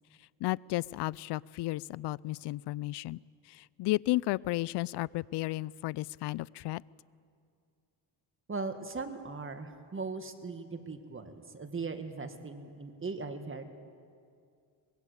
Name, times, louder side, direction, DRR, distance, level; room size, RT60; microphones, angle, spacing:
voice 1, 0.4-3.2 3.5-6.8, left 18 dB, 65° left, 23 dB, 0.5 m, -33 dB
voice 2, 8.5-13.6, right 4 dB, 30° right, 7 dB, 1.9 m, -39 dB
24.0 x 21.0 x 8.3 m, 2.3 s
cardioid pair, 95°, 44 cm